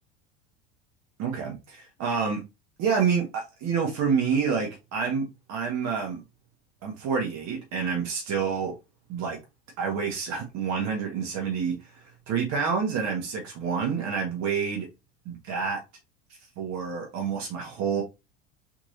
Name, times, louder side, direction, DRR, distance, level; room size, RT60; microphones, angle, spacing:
voice 1, 1.2-2.4 2.8-6.2 6.8-8.7 9.1-9.4 9.8-11.8 12.3-14.9 15.2-15.8 16.6-18.0, right 6 dB, 45° right, 1.5 m, -28 dB
4.4 x 3.1 x 2.7 m
hypercardioid pair, 85°, 36 cm